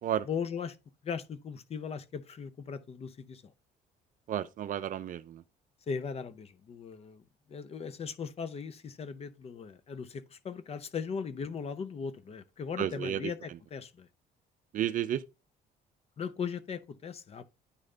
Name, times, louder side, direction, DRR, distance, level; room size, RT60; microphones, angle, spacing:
voice 1, 0.3-0.8 1.0-3.5 5.9-7.2 7.5-14.1 16.2-17.4, left 6 dB, 35° left, 0.7 m, -38 dB
voice 2, 4.3-5.4 12.8-13.3 14.7-15.2, right 11 dB, 50° right, 0.5 m, -32 dB
9.7 x 3.3 x 3.8 m
cardioid pair, 110°, 17 cm